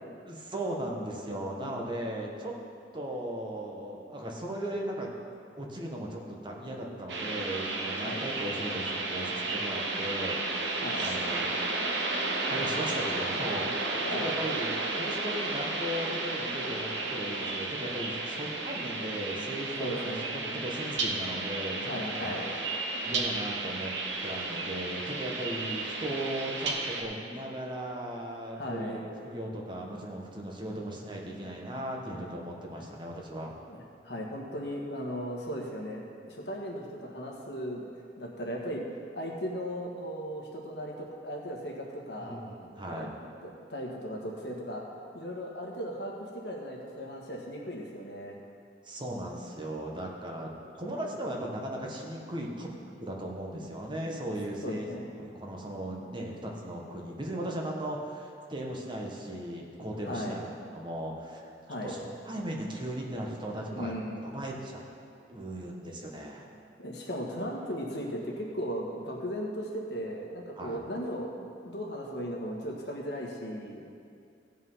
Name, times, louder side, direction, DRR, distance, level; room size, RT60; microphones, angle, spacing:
voice 1, 0.3-2.5 2.9-5.1 5.6-10.4 10.9-11.6 12.5-22.4 23.0-23.9 24.2-33.5 42.2-43.1 48.8-50.5 50.8-52.7 53.0-61.4 61.8-63.9 64.3-64.8 65.3-66.5 70.6-70.8, right 1 dB, 25° right, -1 dB, 1.4 m, -37 dB
sound 1, 7.1-27.0, right 3 dB, 90° right, 1.3 m, -33 dB
voice 2, 19.8-20.4 21.8-22.5 28.6-29.0 32.8-32.9 33.6-33.8 34.0-37.8 38.2-38.8 39.1-42.4 42.9-44.8 45.1-48.4 54.6-55.1 60.0-60.4 61.7-61.9 63.7-64.3 66.8-73.8, equal, 70° left, -1 dB, 1.7 m, -37 dB
16.0 x 5.6 x 5.7 m, 2.4 s
head